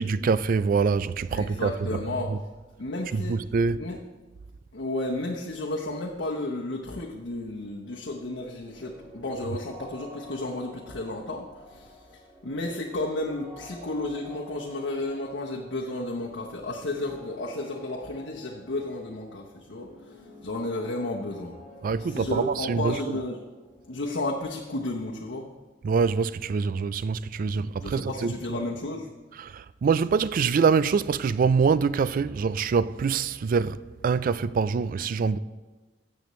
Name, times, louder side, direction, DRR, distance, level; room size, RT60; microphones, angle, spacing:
voice 1, 0.0-2.4 3.1-3.9 9.5-9.6 21.8-23.2 25.8-28.6 29.3-35.4, right 5 dB, 50° right, 0.3 m, -25 dB
voice 2, 1.3-2.3 2.8-3.4 3.8-4.0 4.7-20.2 20.4-21.6 22.0-23.4 23.9-25.5 27.8-29.1, left 2 dB, 85° left, 0.9 m, -32 dB
sound 1, 8.6-26.3, equal, 10° right, 3.1 m, -49 dB
13.5 x 7.7 x 3.1 m
head